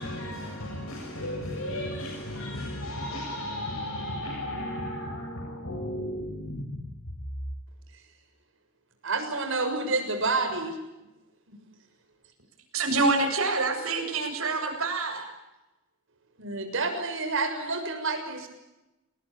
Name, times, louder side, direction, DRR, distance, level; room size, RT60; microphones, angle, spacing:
voice 1, 0.0-6.9, left 1 dB, 90° left, 7.4 m, -34 dB
voice 2, 9.0-10.8 16.4-18.5, right 3 dB, 65° right, 6.7 m, -29 dB
voice 3, 12.7-15.2, right 3 dB, 85° right, 7.8 m, -26 dB
29.0 x 21.0 x 8.8 m
head